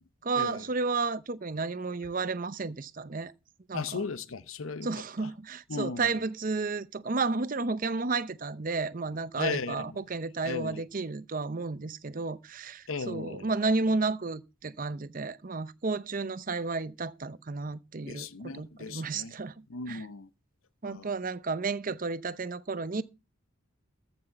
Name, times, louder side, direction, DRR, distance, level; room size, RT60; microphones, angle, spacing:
voice 1, 0.2-3.3 3.7-4.0 4.8-18.3 18.5-20.0 20.8-23.0, right 3 dB, 40° right, 0.7 m, -32 dB
voice 2, 3.7-4.9 5.2-5.3 5.7-6.1 9.4-9.9 10.4-10.8 12.9-13.5 18.1-19.3 19.7-20.3 20.8-21.1, left 4 dB, 85° left, 0.8 m, -36 dB
14.5 x 6.1 x 5.8 m
head